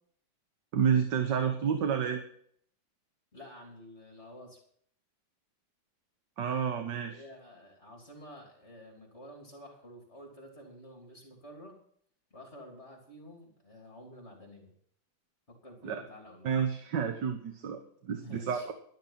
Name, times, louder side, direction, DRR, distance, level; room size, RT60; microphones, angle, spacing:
voice 1, 0.7-2.2 6.4-7.2 15.8-16.0 16.4-18.7, right 7 dB, 65° right, 6 dB, 1.8 m, -30 dB
voice 2, 3.3-4.6 6.9-11.8 12.3-14.7 15.5-16.5 18.1-18.7, equal, 35° left, 1 dB, 3.5 m, -50 dB
12.0 x 12.0 x 5.9 m, 0.62 s
omnidirectional pair, 2.1 m